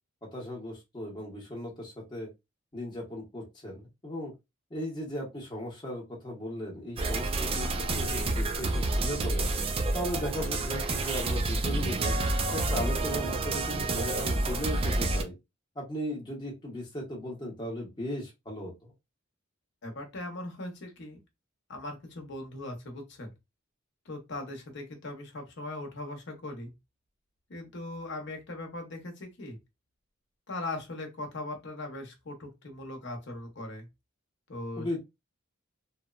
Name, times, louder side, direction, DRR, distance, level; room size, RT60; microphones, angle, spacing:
voice 1, 0.2-2.3 2.7-4.3 4.7-9.5 9.9-12.1 12.5-15.3 15.8-18.9 34.8-35.0, left 1 dB, 20° left, 0.8 m, -37 dB
sound 1, 7.0-15.2, right 2 dB, 30° right, 0.3 m, -29 dB
voice 2, 19.8-21.2 21.7-23.3 24.0-26.7 27.5-29.6 30.5-33.9 34.5-35.0, left 2 dB, 60° left, 0.8 m, -39 dB
2.9 x 2.0 x 2.3 m
head